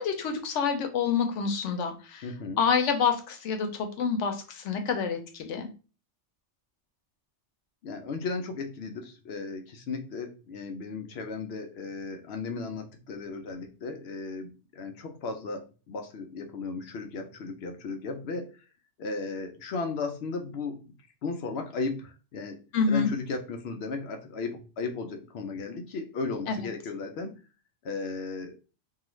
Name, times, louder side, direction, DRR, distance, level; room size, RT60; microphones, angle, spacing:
voice 1, 0.0-2.3 2.6-5.7 22.7-23.1 26.5-26.6, left 6 dB, 90° left, 6 dB, 1.0 m, -27 dB
voice 2, 2.2-2.6 7.8-18.7 19.0-20.9 21.2-27.4 27.8-28.6, left 4 dB, 65° left, 5 dB, 0.7 m, -35 dB
2.7 x 2.4 x 3.0 m, 0.34 s
omnidirectional pair, 1.2 m